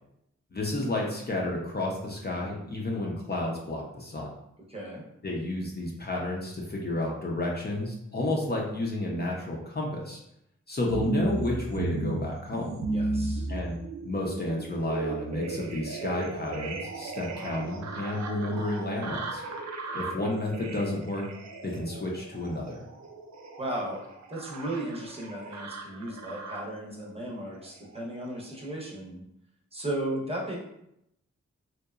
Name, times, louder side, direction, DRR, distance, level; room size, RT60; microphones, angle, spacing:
voice 1, 0.5-4.3 5.2-10.2 10.7-12.8 13.5-13.7 14.0-19.4 19.9-21.3 21.6-22.8, left 2 dB, 35° left, -3 dB, 0.6 m, -31 dB
voice 2, 4.7-5.0 12.9-13.5 23.6-29.2 29.7-30.6, right 1 dB, 20° right, -3 dB, 0.8 m, -35 dB
sound 1, 10.9-26.8 27.4-28.1 28.6-28.7, right 3 dB, 70° right, 0.4 m, -35 dB
2.8 x 2.1 x 2.3 m, 0.79 s
cardioid pair, 50°, 29 cm